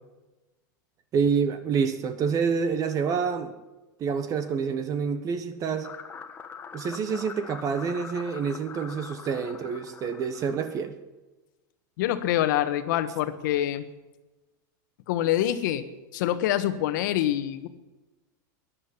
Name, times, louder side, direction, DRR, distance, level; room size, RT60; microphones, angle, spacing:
voice 1, 1.1-3.5 4.0-5.9 6.7-11.0, right 6 dB, 35° right, 11 dB, 1.2 m, -27 dB
sound 1, 5.8-10.9, left 6 dB, 20° left, 1.3 m, -43 dB
voice 2, 12.0-13.8 15.1-15.8 16.1-17.7, left 12 dB, 70° left, 11 dB, 1.5 m, -25 dB
13.0 x 11.0 x 9.8 m, 1.1 s
supercardioid pair, 135°, 11 cm